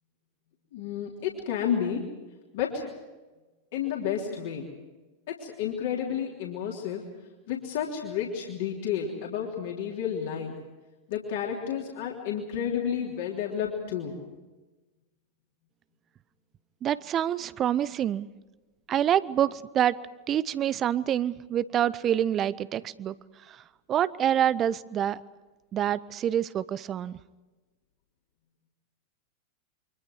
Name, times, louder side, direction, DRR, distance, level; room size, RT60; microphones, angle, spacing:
voice 1, 0.7-2.0 2.5-2.9 3.7-4.7 5.3-7.0 7.5-10.5 11.1-14.2, left 8 dB, 55° left, -2 dB, 3.4 m, -31 dB
voice 2, 16.8-18.3 18.9-20.0 20.3-23.1 23.5-23.6 23.9-25.2 25.7-27.2, right 10 dB, 30° right, 18 dB, 0.7 m, -26 dB
29.0 x 24.0 x 4.8 m, 1.2 s
figure-of-eight pair, 90°, 0 cm